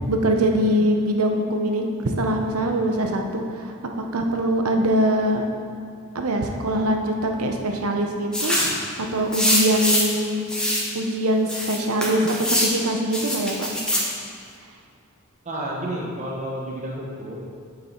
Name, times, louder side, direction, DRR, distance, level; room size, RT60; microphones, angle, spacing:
voice 1, 0.1-5.5 6.1-8.8 9.1-10.5 10.9-13.7, right 1 dB, 90° right, 3 dB, 0.9 m, -23 dB
sound 1, 8.3-8.8 9.3-10.2 10.5-10.9 11.5-12.7 13.1-14.1, left 1 dB, 5° left, 1.2 m, -23 dB
voice 2, 15.4-17.4, right 1 dB, 35° right, -3 dB, 1.1 m, -30 dB
8.0 x 6.8 x 4.4 m, 2.3 s
head